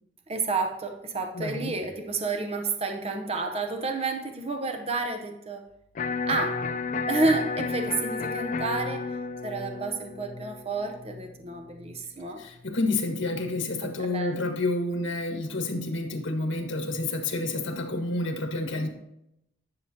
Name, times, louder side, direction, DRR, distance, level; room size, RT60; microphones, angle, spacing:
voice 1, 0.3-5.6 6.3-6.6 7.1-12.4 13.8-14.4, right 3 dB, 30° right, 5 dB, 0.7 m, -30 dB
voice 2, 1.3-1.7 12.4-18.9, left 2 dB, 75° left, 3 dB, 1.6 m, -29 dB
Electric guitar, 6.0-12.0, left 4 dB, 40° left, 0.4 m, -32 dB
10.5 x 7.0 x 2.8 m, 0.82 s
head